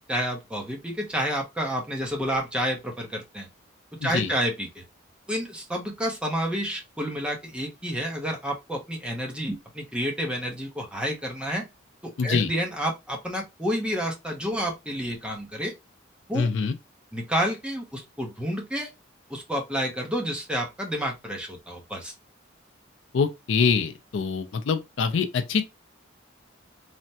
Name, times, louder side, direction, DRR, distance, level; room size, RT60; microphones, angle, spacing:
voice 1, 0.1-3.5 4.0-4.8 5.3-11.6 12.0-15.7 16.3-16.5 17.1-18.9 19.3-22.1, equal, 5° right, 0.6 m, -29 dB
voice 2, 12.2-12.5 16.3-16.7 23.1-25.6, left 5 dB, 65° left, 0.4 m, -24 dB
3.3 x 2.1 x 2.7 m
head